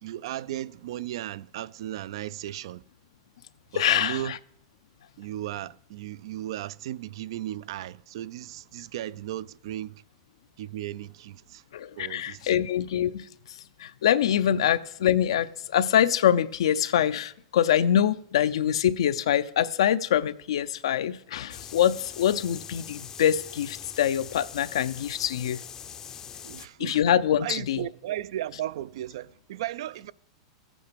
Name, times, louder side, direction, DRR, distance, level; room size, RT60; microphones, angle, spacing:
voice 1, 0.0-2.8 3.7-4.4 5.2-10.0 10.6-11.6 12.0-12.6 26.4-27.0 27.4-30.1, right 13 dB, 65° right, 0.4 m, -35 dB
voice 2, 3.7-4.4 11.7-25.6 26.8-27.8, left 10 dB, 85° left, 0.6 m, -24 dB
sound 1, 21.5-26.7, left 8 dB, 20° left, 0.5 m, -42 dB
14.0 x 8.5 x 5.1 m
supercardioid pair, 150°, 3 cm